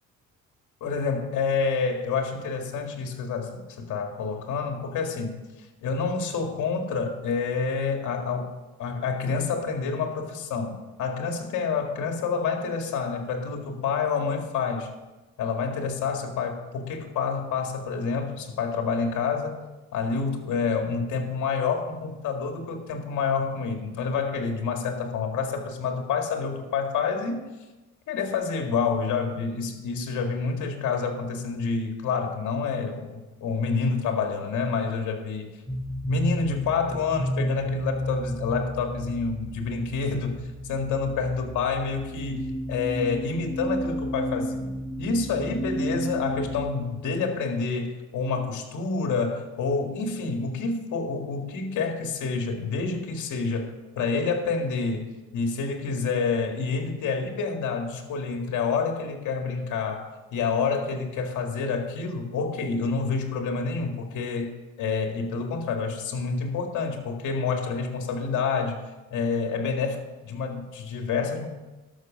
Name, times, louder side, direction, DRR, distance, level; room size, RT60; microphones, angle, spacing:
voice 1, 0.8-8.5 8.8-14.9 15.4-19.6 19.9-27.4 28.1-35.5 36.1-55.1 55.3-68.8 69.1-71.5, left 5 dB, 75° left, 4 dB, 2.0 m, -28 dB
sound 1, 35.7-46.6, equal, 5° right, 3.9 m, -32 dB
12.5 x 6.3 x 6.3 m, 1.1 s
cardioid pair, 90°, 30 cm